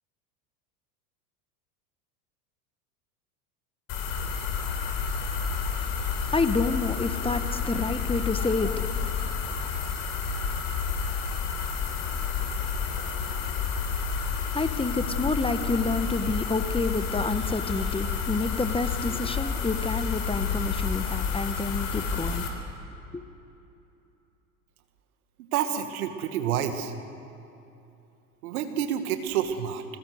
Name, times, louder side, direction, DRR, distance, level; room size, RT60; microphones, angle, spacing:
sound 1, 3.9-22.5, left 6 dB, 55° left, 4.3 m, -30 dB
voice 1, 6.3-8.8 14.5-22.5 23.1-23.2, left 3 dB, 10° left, 10 dB, 1.5 m, -28 dB
voice 2, 25.4-26.9 28.4-29.8, right 9 dB, 70° right, 8 dB, 2.1 m, -28 dB
29.5 x 22.0 x 6.5 m, 2.8 s
hypercardioid pair, 80°, 45 cm